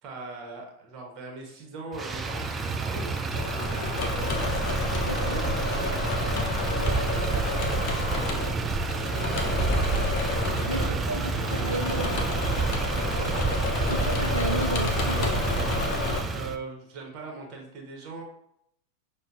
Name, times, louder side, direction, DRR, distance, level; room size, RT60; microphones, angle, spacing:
voice 1, 0.0-4.9 5.2-6.4 7.1-10.3 10.6-11.8 13.1-13.4 16.0-18.2, right 3 dB, 35° right, 1 dB, 1.0 m, -41 dB
Motor vehicle (road), 1.9-16.6, right 3 dB, 15° right, 0.3 m, -29 dB
Engine / Mechanisms, 3.3-16.2, left 3 dB, 45° left, 0.7 m, -30 dB
voice 2, 5.0-5.4 6.8-7.1 10.7-12.2 13.9-15.4, right 1 dB, 85° right, 1 dB, 0.4 m, -33 dB
6.5 x 2.2 x 2.5 m, 0.74 s
figure-of-eight pair, 90°, 0 cm